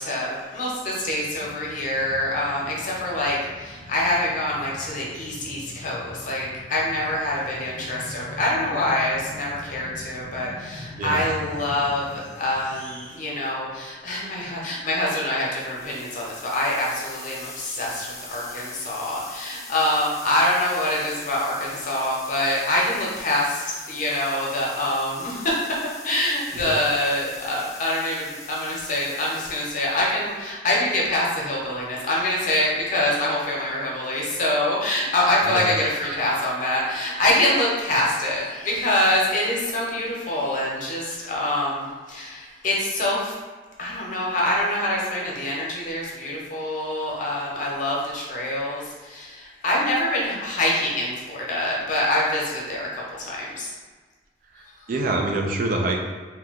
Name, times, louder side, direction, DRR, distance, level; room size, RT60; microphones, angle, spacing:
voice 1, 0.0-25.7 26.0-43.3 43.8-53.7 54.8-54.9, left 1 dB, 45° left, -4 dB, 0.8 m, -25 dB
sound 1, 0.8-14.1 14.4-14.5, left 1 dB, 90° left, 0.6 m, -42 dB
voice 2, 11.0-11.3 26.6-26.7 35.5-35.7 54.9-56.0, right 2 dB, 50° right, 2 dB, 0.4 m, -25 dB
sound 2, 15.4-30.4, left 3 dB, 20° left, 0.4 m, -42 dB
2.8 x 2.2 x 3.6 m, 1.4 s
head